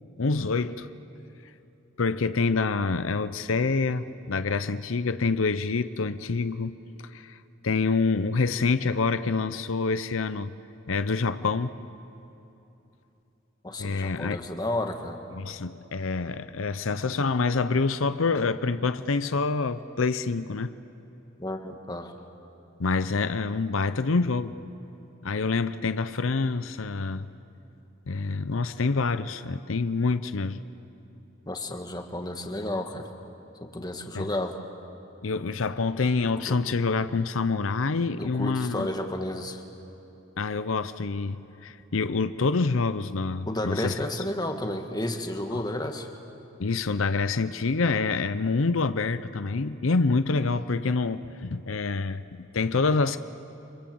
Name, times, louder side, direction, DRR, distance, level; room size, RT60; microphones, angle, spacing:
voice 1, 0.2-0.9 2.0-6.7 7.1-7.4 7.6-10.5 10.9-11.7 13.8-14.4 15.3-20.7 22.8-24.5 25.2-27.3 28.1-30.6 34.1-34.3 35.2-38.9 40.4-43.9 45.5-45.6 46.6-53.2, left 4 dB, 90° left, 0.7 m, -26 dB
voice 2, 13.6-15.2 21.4-22.1 31.4-33.1 33.6-34.6 36.5-36.6 38.2-39.6 43.5-46.1, left 1 dB, 20° left, 1.7 m, -32 dB
29.0 x 25.0 x 7.8 m
head